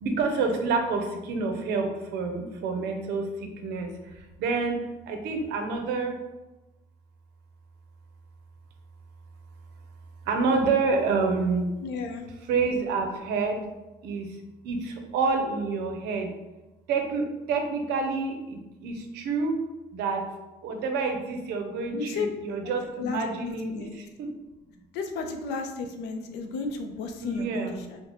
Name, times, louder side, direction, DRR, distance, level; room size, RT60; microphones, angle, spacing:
voice 1, 0.0-3.9 4.4-4.8 5.1-6.2 10.3-11.7 12.5-13.6 14.0-14.3 14.6-16.3 16.9-19.6 19.9-20.2 20.6-24.3 27.2-27.9, right 4 dB, 80° right, 4 dB, 0.6 m, -28 dB
voice 2, 11.8-12.3 21.9-22.3 23.0-23.9 24.9-28.0, left 4 dB, 85° left, 5 dB, 0.5 m, -33 dB
4.0 x 2.1 x 2.9 m, 1.0 s
cardioid pair, 110°, 17 cm